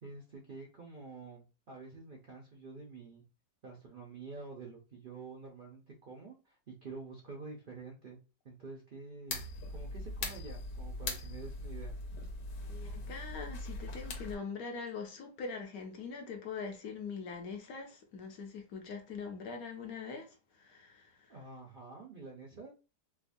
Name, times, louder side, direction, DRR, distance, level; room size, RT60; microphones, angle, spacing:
voice 1, 0.0-3.2 3.6-8.2 8.4-9.4 9.7-11.9 21.3-22.7, right 4 dB, 65° right, 0.5 m, -48 dB
sound 1, 9.3-14.3, left 2 dB, 80° left, 1.4 m, -40 dB
voice 2, 12.6-21.4, left 5 dB, 65° left, 1.1 m, -43 dB
4.6 x 2.1 x 2.6 m
omnidirectional pair, 1.8 m